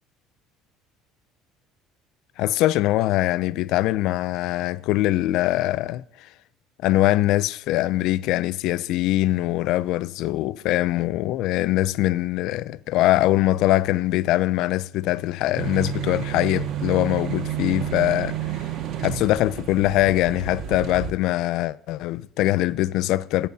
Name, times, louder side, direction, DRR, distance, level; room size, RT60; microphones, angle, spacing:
voice 1, 2.4-6.0 6.8-18.4 19.0-23.5, left 15 dB, 70° left, 0.4 m, -22 dB
sound 1, 15.6-21.1, right 10 dB, 55° right, 0.7 m, -30 dB
26.5 x 8.9 x 2.7 m
supercardioid pair, 105°, 0 cm